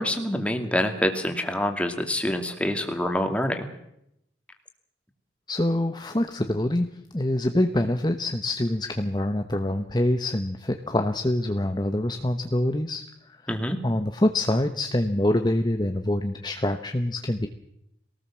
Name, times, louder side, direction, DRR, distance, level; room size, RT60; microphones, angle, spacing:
voice 1, 0.0-3.7 13.5-13.8, left 1 dB, 5° left, 5 dB, 2.4 m, -26 dB
voice 2, 5.5-6.9 7.1-13.0 13.8-17.5, left 1 dB, 20° left, 7 dB, 0.9 m, -25 dB
23.0 x 18.5 x 7.4 m, 0.79 s
head